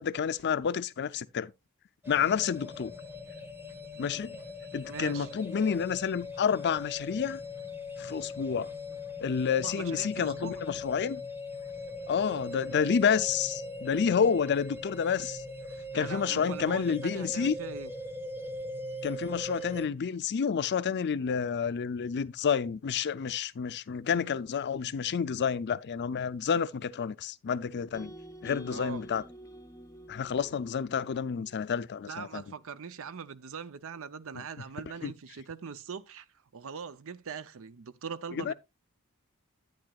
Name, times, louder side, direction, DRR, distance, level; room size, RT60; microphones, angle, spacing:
voice 1, 0.0-1.5 2.1-2.9 4.0-4.4 4.7-7.4 8.0-8.7 9.2-11.2 12.1-15.4 15.9-17.6 19.0-28.1 28.4-29.2 30.1-32.4 35.0-35.1 38.4-38.5, left 7 dB, 50° left, 0.5 m, -29 dB
sound 1, 2.0-19.9, left 1 dB, 10° right, 1.2 m, -40 dB
voice 2, 4.8-5.3 9.6-10.6 15.9-17.9 28.7-29.0 32.1-36.3 36.5-38.5, right 6 dB, 65° right, 0.6 m, -41 dB
sound 2, 27.9-32.1, right 1 dB, 15° left, 0.7 m, -48 dB
10.5 x 8.9 x 2.3 m
head